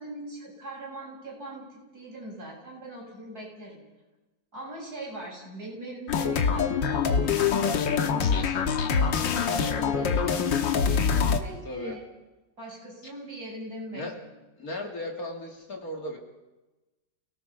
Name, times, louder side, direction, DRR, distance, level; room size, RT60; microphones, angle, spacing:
voice 1, 0.0-3.8 4.5-12.1 12.6-14.3, right 1 dB, 55° right, -3 dB, 7.5 m, -41 dB
sound 1, 6.1-11.4, left 6 dB, 85° left, 1.9 m, -24 dB
voice 2, 11.6-12.0 13.9-14.2 14.6-16.2, left 1 dB, 50° left, 2 dB, 2.8 m, -36 dB
29.5 x 18.0 x 5.6 m, 1.1 s
omnidirectional pair, 2.0 m